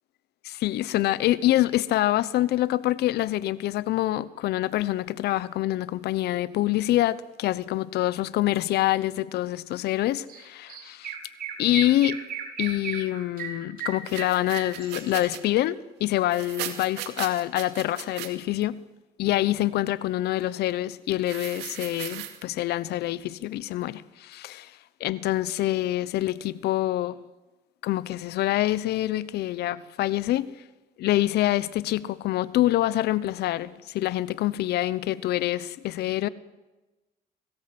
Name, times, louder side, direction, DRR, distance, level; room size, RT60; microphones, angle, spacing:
voice 1, 0.4-11.1 11.6-12.2 12.6-18.8 19.2-24.7 25.0-27.2 27.8-30.5 31.0-36.3, left 15 dB, 75° left, 0.9 m, -26 dB
Chirp tweet, 10.3-10.4 10.7-15.3, right 7 dB, 60° right, 4.5 m, -35 dB
sound 1, 14.0-15.4 16.2-18.3 21.2-22.4, right 12 dB, 90° right, 2.4 m, -37 dB
26.0 x 18.0 x 7.8 m
cardioid pair, 105°, 17 cm